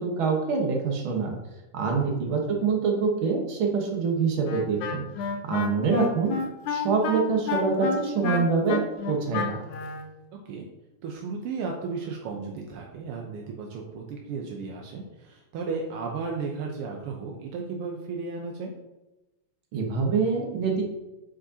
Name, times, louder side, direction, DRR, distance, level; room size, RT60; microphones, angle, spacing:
voice 1, 0.0-1.3 1.7-5.0 5.5-6.3 6.7-8.8 9.1-9.6 19.7-20.8, right 5 dB, 55° right, 1 dB, 1.6 m, -25 dB
Wind instrument woodwind instrument, 4.4-10.1, left 4 dB, 85° left, 2.1 m, -30 dB
voice 2, 11.0-18.7, right 4 dB, 75° right, 0 dB, 1.3 m, -34 dB
8.6 x 5.2 x 2.7 m, 1.0 s
omnidirectional pair, 3.3 m